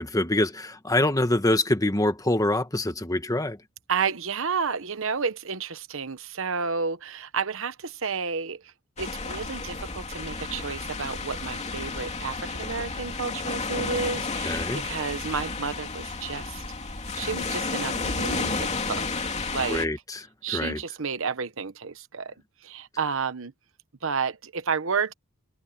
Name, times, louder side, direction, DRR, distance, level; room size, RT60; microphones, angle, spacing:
voice 1, 0.0-3.6 14.4-14.9 19.7-20.8, left 1 dB, 15° left, 1.5 m, -25 dB
voice 2, 3.9-8.6 9.0-16.6 17.2-19.1 19.5-19.9 20.4-22.3 22.6-23.5 24.0-25.1, right 5 dB, 70° right, 1.1 m, -31 dB
sound 1, 9.0-19.9, left 3 dB, 35° left, 2.9 m, -32 dB
head